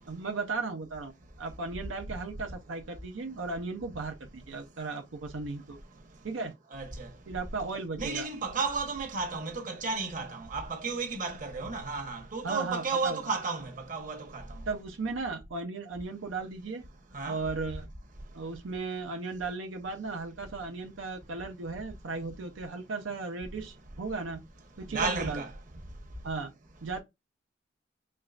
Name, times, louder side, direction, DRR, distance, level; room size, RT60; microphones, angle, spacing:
voice 1, 0.1-1.1 1.4-5.8 6.2-6.5 7.3-8.3 12.4-13.2 14.7-16.9 17.3-17.9 18.3-24.4 24.8-25.4 26.2-26.5 26.8-27.0, right 3 dB, 85° right, 0.6 m, -36 dB
voice 2, 6.7-7.1 8.0-14.4 17.1-17.4 24.9-25.5, right 4 dB, 45° right, 1.0 m, -33 dB
4.4 x 3.0 x 2.4 m
head